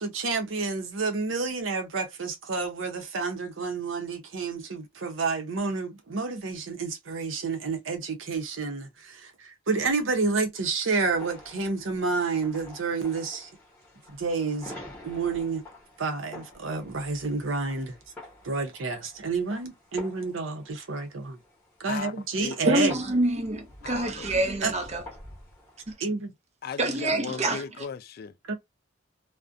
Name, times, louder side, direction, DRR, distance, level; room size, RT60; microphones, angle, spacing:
voice 1, 0.0-13.5 14.1-14.8 15.0-15.6 16.0-18.0 18.4-21.4 21.8-23.0 24.6-24.7 26.0-26.3 28.5-28.6, right 4 dB, 85° right, 0.7 m, -29 dB
sound 1, 11.0-25.9, left 1 dB, 10° left, 1.0 m, -48 dB
voice 2, 21.9-22.6 23.8-24.3 26.6-28.4, left 6 dB, 50° left, 0.3 m, -37 dB
voice 3, 22.6-25.0 26.8-27.6, right 1 dB, 35° right, 0.6 m, -26 dB
2.4 x 2.1 x 2.5 m
head